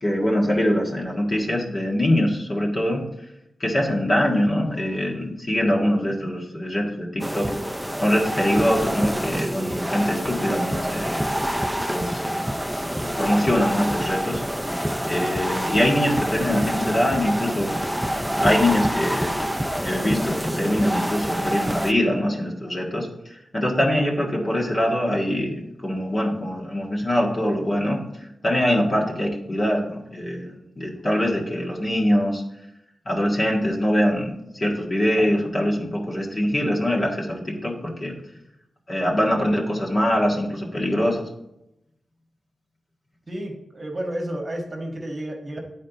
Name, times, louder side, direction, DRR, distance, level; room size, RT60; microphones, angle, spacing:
voice 1, 0.0-3.0 3.6-7.5 8.0-11.3 11.9-12.6 13.0-14.4 15.1-17.8 18.4-19.3 19.8-23.1 23.5-28.0 28.4-32.4 33.0-38.1 38.9-41.2, equal, 35° left, -2 dB, 1.6 m, -23 dB
sound 1, 7.2-21.9, equal, ahead, 0.4 m, -27 dB
voice 2, 43.3-45.6, right 1 dB, 35° right, 0 dB, 1.4 m, -31 dB
9.7 x 4.3 x 4.0 m, 0.85 s
wide cardioid pair, 85°, 0 cm